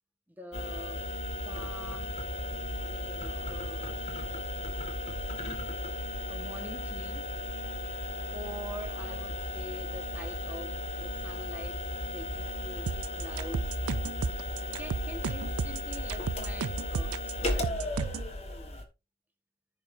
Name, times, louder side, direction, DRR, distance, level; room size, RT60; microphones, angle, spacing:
voice 1, 0.4-1.1 1.4-2.2 2.7-3.9 6.3-7.4 8.3-11.8 12.1-13.8 14.8-17.9, right 1 dB, 10° right, 1.3 m, -45 dB
sound 1, 0.5-18.9, left 1 dB, 25° left, 1.3 m, -35 dB
sound 2, 12.9-18.3, right 6 dB, 75° right, 0.4 m, -34 dB
14.5 x 5.0 x 2.6 m
head